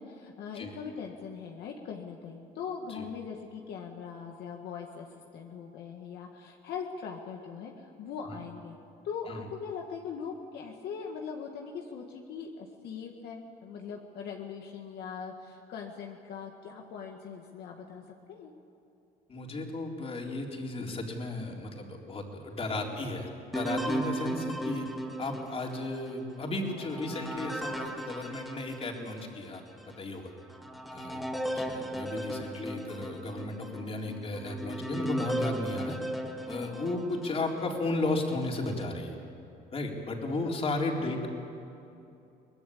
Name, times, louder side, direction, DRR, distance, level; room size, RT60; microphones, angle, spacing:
voice 1, 0.0-8.8 9.0-18.5 22.7-23.0 32.1-32.5 40.4-40.6 41.0-41.2, left 6 dB, 75° left, 2 dB, 1.9 m, -41 dB
voice 2, 19.3-24.9 25.2-29.6 30.0-30.3 30.9-31.2 31.5-36.0 36.5-39.2 39.7-41.3, left 2 dB, 35° left, 0 dB, 4.0 m, -34 dB
sound 1, 23.5-29.3 29.8-29.9 30.5-37.7 38.3-38.9, right 1 dB, ahead, 2.1 m, -36 dB
23.5 x 20.0 x 8.7 m, 2.7 s
cardioid pair, 110°, 17 cm